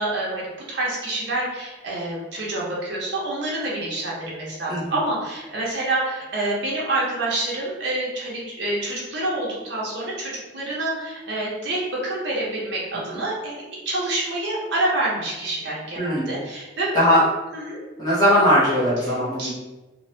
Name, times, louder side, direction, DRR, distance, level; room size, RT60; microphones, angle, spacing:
voice 1, 0.0-17.2 17.5-17.8 19.1-19.5, right 2 dB, 60° right, -5 dB, 0.8 m, -27 dB
voice 2, 16.0-16.4 16.9-17.2 18.0-19.5, equal, 20° left, -9 dB, 0.6 m, -19 dB
3.0 x 2.1 x 2.7 m, 1.1 s
head